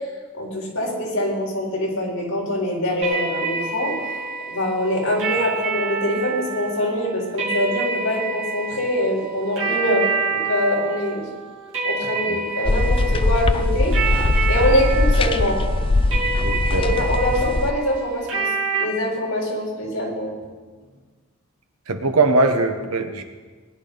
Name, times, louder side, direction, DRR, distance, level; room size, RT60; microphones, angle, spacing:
voice 1, 0.3-3.9 4.5-11.3 11.8-15.6 16.8-18.5 18.8-20.3, left 1 dB, 75° left, -3 dB, 4.4 m, -24 dB
sound 1, 3.0-18.8, right 5 dB, 60° right, 2.8 m, -28 dB
sound 2, 12.7-17.7, left 2 dB, 25° left, 0.4 m, -20 dB
voice 2, 16.4-17.1 21.9-23.2, right 3 dB, 80° right, 6 dB, 1.3 m, -21 dB
20.0 x 10.5 x 4.0 m, 1.4 s
head